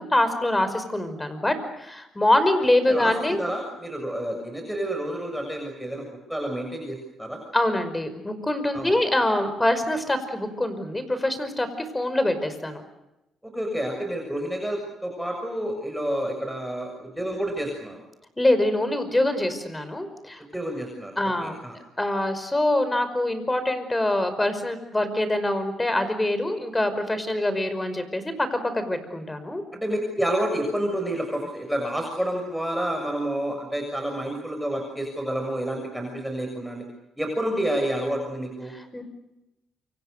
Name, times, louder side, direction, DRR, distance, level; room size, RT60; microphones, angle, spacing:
voice 1, 0.0-3.4 7.5-11.7 11.9-12.8 18.4-20.4 21.2-21.6 22.0-29.6 38.7-39.0, left 1 dB, 15° left, 11 dB, 5.3 m, -24 dB
voice 2, 2.9-7.4 8.7-9.0 13.4-18.0 20.5-21.1 21.4-21.8 29.7-36.8 37.2-38.7, right 1 dB, ahead, 2 dB, 6.7 m, -29 dB
28.5 x 26.0 x 6.7 m, 0.94 s
cardioid pair, 90°, 0 cm